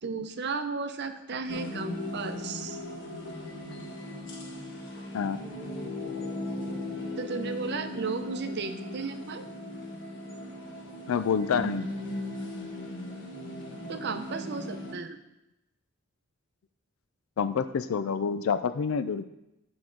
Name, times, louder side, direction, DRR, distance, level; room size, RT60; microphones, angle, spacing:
voice 1, 0.0-2.8 7.2-9.5 13.9-15.2, right 4 dB, 55° right, 8 dB, 0.6 m, -34 dB
sound 1, 1.5-14.9, left 1 dB, 60° left, 1.5 m, -37 dB
voice 2, 11.1-11.9 17.4-19.2, left 6 dB, 80° left, 13 dB, 0.4 m, -27 dB
9.7 x 5.9 x 3.8 m, 0.93 s
head